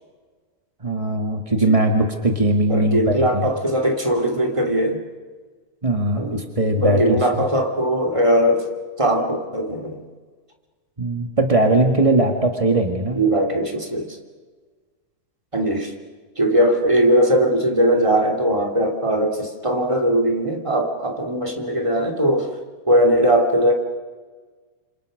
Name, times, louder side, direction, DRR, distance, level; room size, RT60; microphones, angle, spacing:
voice 1, 0.8-3.5 5.8-7.2 11.0-13.2, right 2 dB, 25° right, 3 dB, 0.7 m, -20 dB
voice 2, 2.7-5.0 6.2-6.4 6.8-8.7 9.0-10.0 13.1-14.1 15.5-15.9 16.4-22.5 22.9-23.7, equal, 10° right, 1 dB, 2.4 m, -20 dB
28.0 x 27.0 x 6.5 m, 1.4 s
omnidirectional pair, 3.8 m